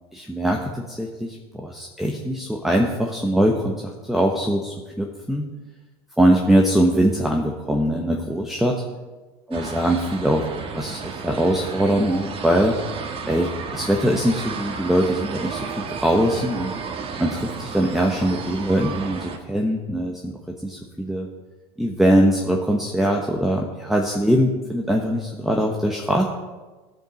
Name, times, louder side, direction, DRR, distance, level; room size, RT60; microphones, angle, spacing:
voice 1, 0.1-3.8 4.1-5.5 6.2-8.8 9.5-12.8 13.3-16.7 17.2-20.3 20.6-21.3 21.8-26.3, right 1 dB, ahead, 0 dB, 1.1 m, -22 dB
sound 1, 9.5-19.4, right 5 dB, 40° right, 1.5 m, -33 dB
15.5 x 5.3 x 5.2 m, 1.3 s
supercardioid pair, 95°, 14 cm